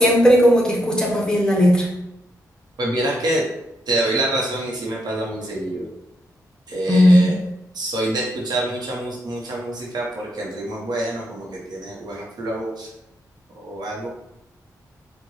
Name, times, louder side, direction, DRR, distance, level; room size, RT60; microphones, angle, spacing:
voice 1, 0.0-1.9 6.9-7.3, equal, 10° left, -3 dB, 1.3 m, -15 dB
voice 2, 2.8-3.5 3.9-5.9 6.7-7.3 7.7-12.9 13.5-14.1, right 1 dB, 75° right, -3 dB, 1.2 m, -26 dB
4.8 x 2.5 x 3.2 m, 0.85 s
cardioid pair, 65°, 7 cm